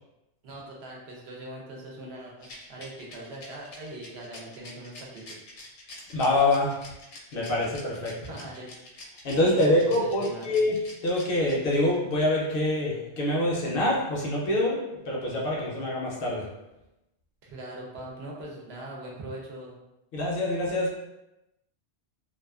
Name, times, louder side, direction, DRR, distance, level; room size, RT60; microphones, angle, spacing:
voice 1, 0.4-5.4 8.2-8.7 9.6-10.5 17.4-19.7, right 1 dB, 70° right, -2 dB, 0.8 m, -41 dB
Rattle, 2.4-12.0, left 2 dB, 85° left, 0.9 m, -47 dB
voice 2, 6.1-6.7 7.3-8.3 9.2-16.5 20.1-20.9, left 1 dB, 60° left, -3 dB, 0.7 m, -25 dB
2.4 x 2.3 x 2.3 m, 0.94 s
omnidirectional pair, 1.1 m